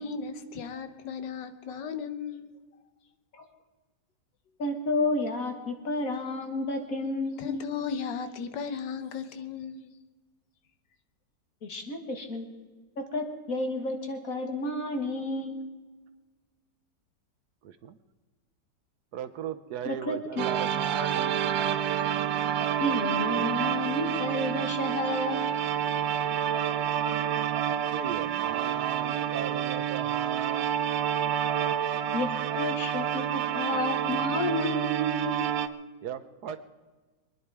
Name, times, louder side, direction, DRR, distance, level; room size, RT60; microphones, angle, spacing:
voice 1, 0.0-2.5 7.4-10.0, left 6 dB, 80° left, 9 dB, 1.7 m, -36 dB
voice 2, 4.6-7.7 11.6-12.5 13.0-15.6 19.9-20.5 22.8-25.5 32.1-35.3, left 2 dB, 50° left, 5 dB, 2.0 m, -31 dB
voice 3, 17.6-18.0 19.1-21.7 27.9-30.7 36.0-36.6, right 9 dB, 65° right, 10 dB, 1.2 m, -37 dB
sound 1, 20.4-35.7, right 9 dB, 85° right, 1.4 m, -28 dB
23.5 x 10.5 x 4.8 m, 1.3 s
omnidirectional pair, 1.9 m